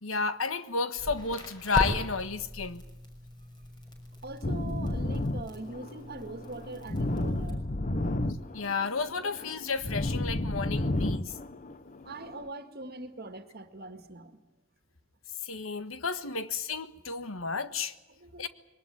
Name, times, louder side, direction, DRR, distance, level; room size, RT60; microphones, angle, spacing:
voice 1, 0.0-2.8 8.5-11.4 15.4-17.9 18.4-18.5, left 5 dB, 85° left, 1.5 m, -32 dB
Crackle, 1.0-7.5, equal, 20° left, 6.4 m, -39 dB
voice 2, 4.2-7.6 12.1-14.4 17.6-17.7 18.1-18.5, right 2 dB, 50° right, 1.9 m, -42 dB
sound 1, 4.4-12.5, left 1 dB, 40° left, 1.0 m, -32 dB
22.5 x 19.5 x 9.5 m
head